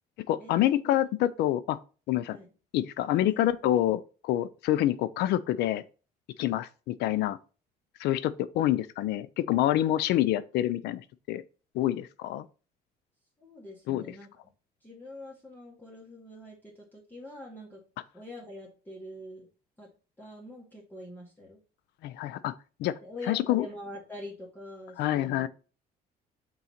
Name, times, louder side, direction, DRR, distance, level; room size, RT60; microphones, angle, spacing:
voice 1, 0.3-1.8 2.1-2.4 2.7-5.8 6.4-7.4 8.0-11.4 11.7-12.4 13.9-14.1 22.0-22.5 22.8-23.0 23.3-23.7 25.0-25.5, left 13 dB, 80° left, 0.5 m, -27 dB
voice 2, 3.1-3.5 13.4-14.3 14.8-17.8 18.1-19.5 19.8-19.9 20.2-21.6 23.0-25.5, left 1 dB, 10° left, 2.0 m, -44 dB
5.7 x 3.9 x 4.2 m
cardioid pair, 110°, 17 cm